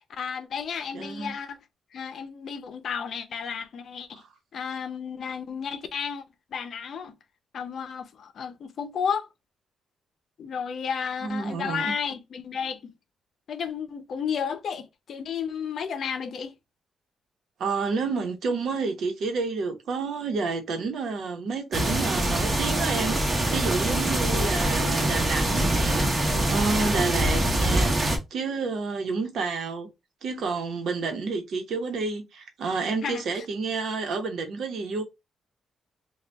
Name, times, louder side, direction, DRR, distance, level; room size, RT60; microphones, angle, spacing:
voice 1, 0.1-1.6 1.9-4.2 4.5-6.2 6.5-7.1 7.5-9.3 10.4-12.9 13.5-16.6 33.0-33.5, left 7 dB, 60° left, 0.6 m, -32 dB
voice 2, 0.9-1.3 11.2-11.9 17.6-29.9 30.2-35.0, right 4 dB, 70° right, 1.0 m, -30 dB
sound 1, 21.7-28.2, right 1 dB, 25° right, 1.3 m, -24 dB
3.9 x 2.3 x 3.4 m
cardioid pair, 125°, 0 cm